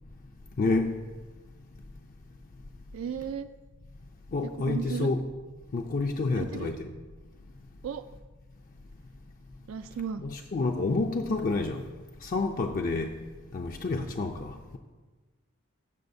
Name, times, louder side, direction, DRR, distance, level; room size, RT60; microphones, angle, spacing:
voice 1, 0.6-1.0 4.3-5.3 5.7-6.9 10.2-11.8 12.2-13.1 13.5-14.8, left 3 dB, 40° left, 0.4 m, -29 dB
voice 2, 2.9-3.5 4.4-5.1 6.3-6.8 7.8-8.0 9.7-10.2, right 7 dB, 75° right, 0.3 m, -35 dB
14.5 x 6.3 x 2.6 m
head